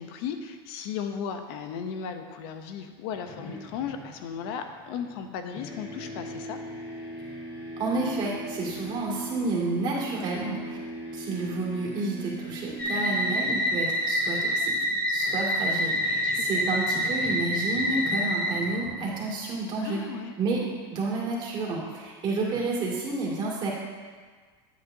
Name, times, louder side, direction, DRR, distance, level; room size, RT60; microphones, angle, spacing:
voice 1, 0.0-6.6 16.2-16.6 19.8-20.4, left 7 dB, 70° left, 7 dB, 0.7 m, -36 dB
sound 1, 3.1-5.3 5.5-19.5, right 1 dB, 40° left, 2.2 m, -41 dB
voice 2, 7.8-10.8 11.1-14.7 15.1-20.0 20.4-20.6 20.9-23.7, right 3 dB, 35° right, -4 dB, 2.3 m, -30 dB
sound 2, 12.8-18.9, equal, 10° left, 1.3 m, -27 dB
10.5 x 8.1 x 2.7 m, 1.5 s
supercardioid pair, 135°, 13 cm